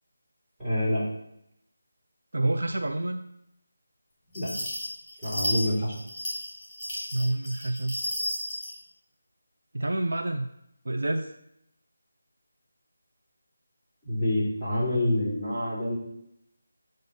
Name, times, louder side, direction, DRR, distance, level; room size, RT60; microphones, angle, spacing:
voice 1, 0.6-1.0 4.3-4.5 5.2-5.9 14.0-16.0, left 1 dB, 10° right, -9 dB, 2.7 m, -27 dB
voice 2, 2.3-3.2 7.0-7.9 9.7-10.5 10.8-11.3, right 1 dB, 75° right, 4 dB, 0.6 m, -28 dB
sound 1, 4.3-8.7, equal, 10° left, 2.4 m, -33 dB
7.8 x 2.7 x 5.4 m, 0.78 s
figure-of-eight pair, 165°, 0 cm